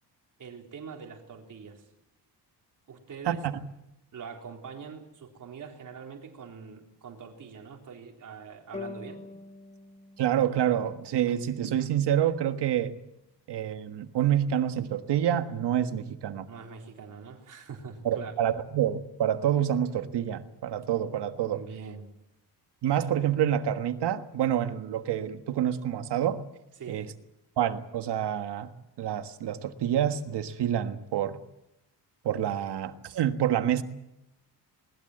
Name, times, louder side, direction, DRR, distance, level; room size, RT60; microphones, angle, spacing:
voice 1, 0.4-1.9 2.9-3.5 4.1-9.2 16.5-18.3 21.5-22.0 26.8-27.1, right 6 dB, 45° right, 2 dB, 3.9 m, -43 dB
voice 2, 3.2-3.6 10.2-12.9 13.5-16.5 18.0-21.6 22.8-26.4 26.9-27.0 27.6-28.7 29.0-31.4 32.2-33.8, right 10 dB, 70° right, 8 dB, 1.6 m, -27 dB
sound 1, 8.7-12.0, left 3 dB, 15° left, 1.3 m, -45 dB
21.0 x 20.5 x 7.9 m, 0.86 s
wide cardioid pair, 170°, 42 cm